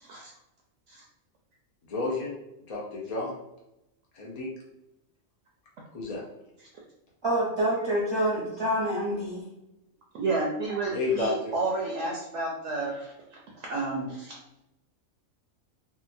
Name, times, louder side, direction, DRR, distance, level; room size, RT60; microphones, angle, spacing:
voice 1, 1.9-2.3 2.7-3.4 4.2-4.5 5.9-6.2 10.9-11.5, left 3 dB, 45° left, -4 dB, 0.5 m, -30 dB
voice 2, 7.2-9.5, right 1 dB, 30° right, -6 dB, 0.6 m, -27 dB
voice 3, 10.1-13.1 13.6-14.3, right 3 dB, 70° right, -2 dB, 0.8 m, -31 dB
2.9 x 2.4 x 2.5 m, 0.88 s
omnidirectional pair, 1.4 m